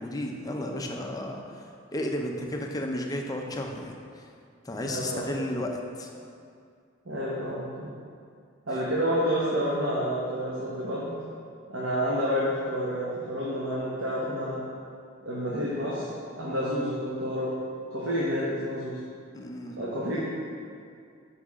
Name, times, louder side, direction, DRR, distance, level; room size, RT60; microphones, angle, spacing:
voice 1, 0.0-4.3 4.6-6.2 19.3-19.8, left 1 dB, 20° left, 1 dB, 0.5 m, -33 dB
voice 2, 4.8-5.3 7.0-7.9 8.7-11.1 11.7-14.6 15.2-16.1 16.4-17.5 17.9-19.0 19.8-20.2, equal, 80° right, -6 dB, 1.0 m, -29 dB
6.5 x 5.4 x 3.6 m, 2.3 s
head